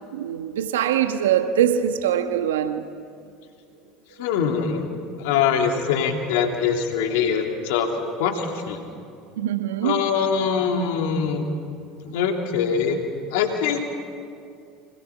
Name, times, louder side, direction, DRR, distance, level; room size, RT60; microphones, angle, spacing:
voice 1, 0.1-2.9 9.4-10.0, right 10 dB, 85° right, 1.3 m, -23 dB
voice 2, 4.2-7.9 8.2-8.8 9.8-11.5 12.0-13.0 13.3-13.8, left 6 dB, 75° left, 2.9 m, -23 dB
29.5 x 25.5 x 5.8 m
hypercardioid pair, 75°, 0 cm